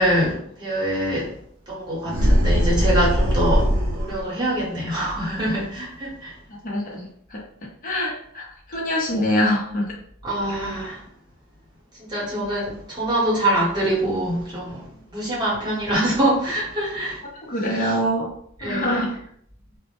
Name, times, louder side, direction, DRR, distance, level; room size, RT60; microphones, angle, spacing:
voice 1, 0.0-1.3 1.7-6.3 10.2-11.0 12.1-17.2 17.7-18.0 18.6-19.0, right 1 dB, 20° right, -7 dB, 1.0 m, -24 dB
sound 1, 2.1-4.3, equal, 75° right, 0.7 m, -20 dB
voice 2, 6.5-7.4 7.8-8.4 8.7-10.0 17.4-18.3 18.6-19.1, equal, 40° left, -2 dB, 0.7 m, -24 dB
2.1 x 2.1 x 2.8 m, 0.65 s
head